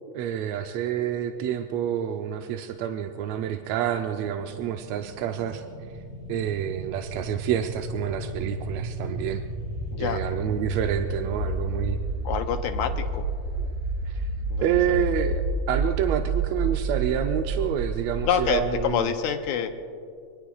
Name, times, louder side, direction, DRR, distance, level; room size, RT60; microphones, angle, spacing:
voice 1, 0.1-5.6 6.3-9.4 10.0-12.0 13.6-13.7 14.1-14.3 14.6-19.1, right 10 dB, 75° right, 6 dB, 1.7 m, -28 dB
sound 1, 3.1-18.9, right 2 dB, 20° right, 1.9 m, -31 dB
voice 2, 9.9-10.2 12.2-13.3 14.5-14.8 18.3-19.7, left 8 dB, 80° left, 6 dB, 2.1 m, -27 dB
25.0 x 22.0 x 2.3 m, 2.3 s
omnidirectional pair, 3.4 m